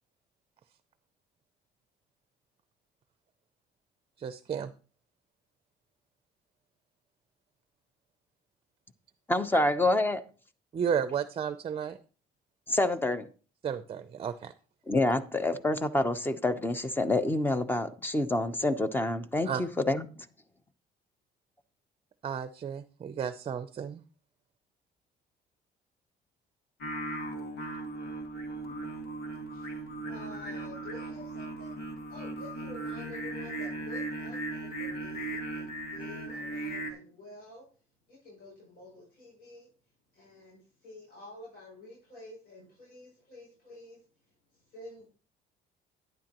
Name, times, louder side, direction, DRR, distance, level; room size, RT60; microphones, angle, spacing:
voice 1, 4.2-4.7 10.7-12.0 13.6-14.5 19.4-19.6 22.2-24.0, right 7 dB, 35° right, 12 dB, 0.6 m, -33 dB
voice 2, 9.3-10.2 12.7-13.2 14.9-20.0, left 2 dB, 10° left, 12 dB, 0.9 m, -27 dB
Singing, 26.8-36.9, right 2 dB, 85° left, 2.3 m, -37 dB
voice 3, 28.7-37.7 38.1-39.7 40.1-45.1, left 2 dB, 65° left, -5 dB, 6.8 m, -50 dB
11.5 x 10.5 x 3.0 m, 0.38 s
cardioid pair, 110°, 17 cm